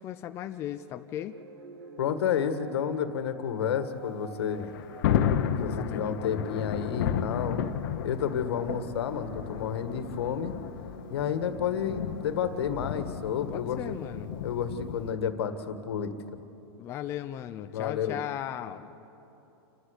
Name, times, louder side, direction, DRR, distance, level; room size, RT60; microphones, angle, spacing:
voice 1, 0.0-1.4 5.8-6.3 13.5-14.3 16.8-19.0, left 11 dB, 20° left, 7 dB, 0.4 m, -37 dB
sound 1, 1.3-15.0, right 5 dB, 65° right, 1.7 m, -48 dB
voice 2, 2.0-4.7 5.5-7.6 8.0-10.6 11.1-13.9 14.4-16.1 17.7-18.2, left 8 dB, 70° left, 9 dB, 1.7 m, -30 dB
Thunder, 4.4-15.1, left 9 dB, 50° left, 1.1 m, -33 dB
28.5 x 11.5 x 8.1 m, 2.9 s
supercardioid pair, 155°, 14 cm